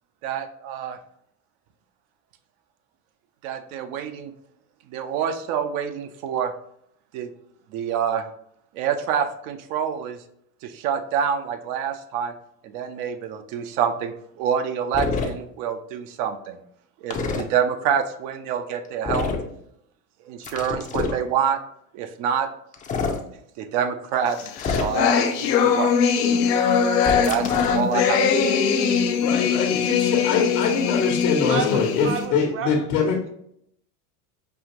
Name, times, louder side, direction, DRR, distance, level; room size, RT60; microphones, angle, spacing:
voice 1, 0.2-1.0 3.4-4.3 4.9-6.5 7.1-7.3 7.7-8.3 8.7-10.2 10.6-12.3 12.6-16.6 17.0-19.3 20.3-21.6 21.9-22.5 23.6-24.4 24.8-26.1 27.2-28.7, right 8 dB, 65° right, 8 dB, 0.7 m, -27 dB
sound 1, 14.9-15.3 17.1-17.4 19.0-19.5 20.4-21.2 22.7-23.2 24.6-25.1 27.0-27.8, left 4 dB, 20° left, 0.4 m, -26 dB
sound 2, 24.4-32.3, left 6 dB, 85° left, 0.7 m, -21 dB
voice 2, 29.2-33.2, left 5 dB, 70° left, -1 dB, 1.0 m, -23 dB
voice 3, 31.5-32.7 33.1-33.3, right 7 dB, 30° right, 7 dB, 0.6 m, -30 dB
5.5 x 2.5 x 2.9 m, 0.71 s
supercardioid pair, 105°, 46 cm